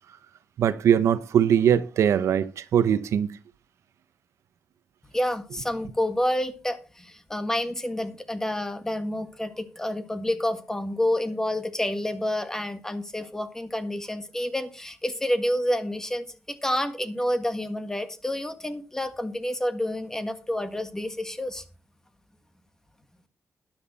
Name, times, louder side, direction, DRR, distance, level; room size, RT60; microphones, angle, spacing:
voice 1, 0.6-3.4, right 9 dB, 85° right, 0.9 m, -21 dB
voice 2, 5.1-16.2 16.6-21.6, left 1 dB, 10° left, 1.6 m, -29 dB
12.5 x 10.5 x 4.2 m
wide cardioid pair, 125°, 5 cm